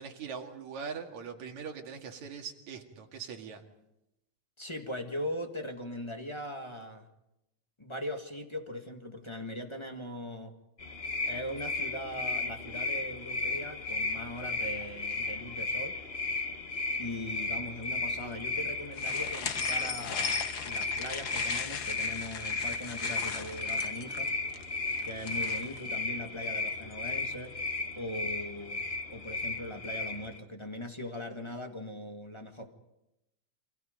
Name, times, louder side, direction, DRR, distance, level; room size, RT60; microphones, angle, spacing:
voice 1, 0.0-3.6, right 6 dB, 65° right, 3 dB, 3.4 m, -41 dB
voice 2, 4.6-7.1 7.8-10.5 11.2-16.0 17.0-24.3 25.0-27.5 27.9-28.8 29.1-32.7, left 1 dB, 15° left, 4 dB, 1.1 m, -40 dB
sound 1, 10.8-30.4, left 3 dB, 60° left, 0.6 m, -35 dB
sound 2, 19.0-25.8, left 7 dB, 90° left, 0.8 m, -38 dB
29.5 x 25.0 x 5.3 m, 0.88 s
omnidirectional pair, 3.6 m